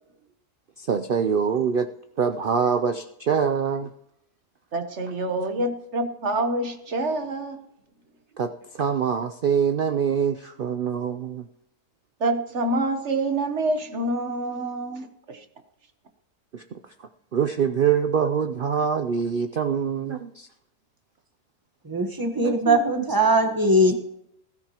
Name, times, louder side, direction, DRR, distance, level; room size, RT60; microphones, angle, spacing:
voice 1, 0.8-1.9 2.2-3.9 8.4-11.4 16.5-16.8 17.3-20.5 22.3-22.9, right 7 dB, 80° right, 9 dB, 0.4 m, -24 dB
voice 2, 4.7-7.6 12.2-15.1, right 2 dB, 50° right, 7 dB, 1.3 m, -26 dB
voice 3, 21.8-24.0, right 1 dB, 15° right, 6 dB, 1.2 m, -21 dB
20.0 x 13.5 x 3.0 m, 0.79 s
omnidirectional pair, 1.7 m